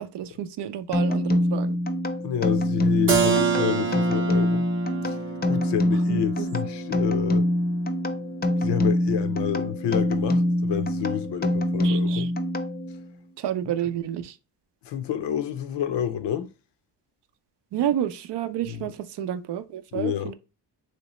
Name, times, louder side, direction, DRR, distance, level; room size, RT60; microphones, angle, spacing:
voice 1, 0.0-1.8 6.1-6.5 11.8-12.3 13.4-14.4 17.7-20.3, right 10 dB, 75° right, 0.5 m, -30 dB
sound 1, 0.9-13.1, left 1 dB, 25° left, 0.4 m, -25 dB
voice 2, 2.2-4.7 5.0-5.2 5.5-7.5 8.6-12.3 13.7-13.8 14.8-16.5 18.7-18.9 19.9-20.3, left 10 dB, 80° left, 0.6 m, -29 dB
Keyboard (musical), 3.1-8.7, right 6 dB, 30° right, 0.6 m, -29 dB
3.2 x 2.9 x 2.9 m
cardioid pair, 80°, 42 cm